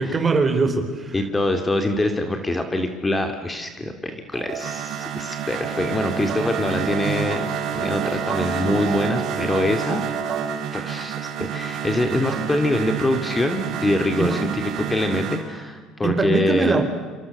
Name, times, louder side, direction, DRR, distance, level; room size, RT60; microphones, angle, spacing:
voice 1, 0.0-1.2 14.2-14.3 16.0-16.8, right 4 dB, 25° right, 8 dB, 4.1 m, -21 dB
voice 2, 1.1-7.5 7.7-10.1 10.7-16.8, left 1 dB, 15° left, 6 dB, 2.5 m, -24 dB
sound 1, 4.3-15.4, right 8 dB, 55° right, 5.1 m, -28 dB
28.0 x 26.0 x 6.7 m, 1.4 s
cardioid pair, 120°, 0 cm